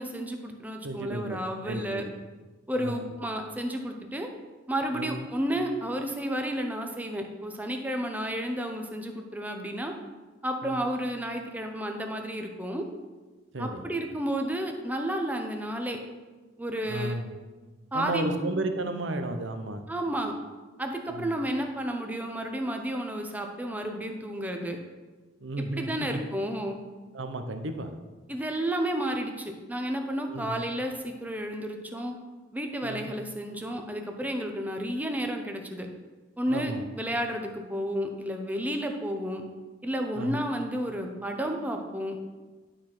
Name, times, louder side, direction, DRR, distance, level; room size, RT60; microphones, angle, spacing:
voice 1, 0.0-2.0 2.7-4.3 4.7-9.9 10.4-12.9 13.6-16.0 16.6-17.2 17.9-18.4 19.9-20.3 20.8-24.8 25.6-26.8 28.3-32.2 32.5-35.9 36.4-39.4 39.8-42.2, equal, 10° right, 4 dB, 0.8 m, -31 dB
voice 2, 0.8-1.4 1.6-2.1 2.8-3.1 4.9-5.3 10.6-10.8 13.5-13.9 16.8-17.3 17.9-19.8 21.1-21.4 25.4-26.2 27.1-27.9 30.3-30.6 32.8-33.1 36.5-36.8 40.1-40.4, right 2 dB, 80° right, 7 dB, 0.9 m, -33 dB
11.5 x 4.3 x 6.0 m, 1.3 s
head